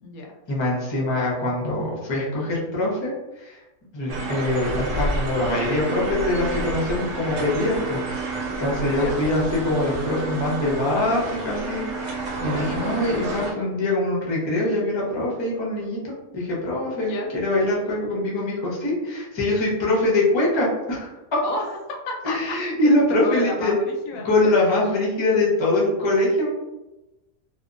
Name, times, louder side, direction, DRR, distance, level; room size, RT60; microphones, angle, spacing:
voice 1, 0.5-3.6 3.9-21.1 22.2-23.7 24.2-26.5, left 1 dB, 35° left, -4 dB, 0.4 m, -23 dB
sound 1, 4.1-13.5, right 2 dB, 85° right, 1.1 m, -30 dB
voice 2, 21.4-22.6 22.8-23.8 24.1-24.5, left 2 dB, 80° left, 1 dB, 1.0 m, -31 dB
2.7 x 2.2 x 2.4 m, 1.0 s
omnidirectional pair, 1.5 m